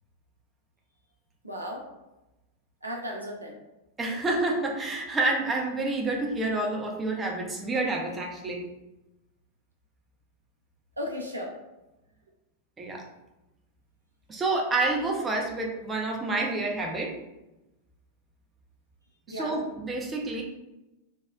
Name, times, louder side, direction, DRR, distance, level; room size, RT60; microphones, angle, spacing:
voice 1, 1.4-1.8 2.8-3.6 11.0-11.5 19.3-19.6, equal, 85° right, -1 dB, 0.5 m, -35 dB
voice 2, 4.0-8.6 12.8-13.0 14.3-17.1 19.3-20.4, right 2 dB, 15° right, 0 dB, 0.5 m, -28 dB
3.6 x 2.0 x 2.3 m, 0.98 s
figure-of-eight pair, 90°, 0 cm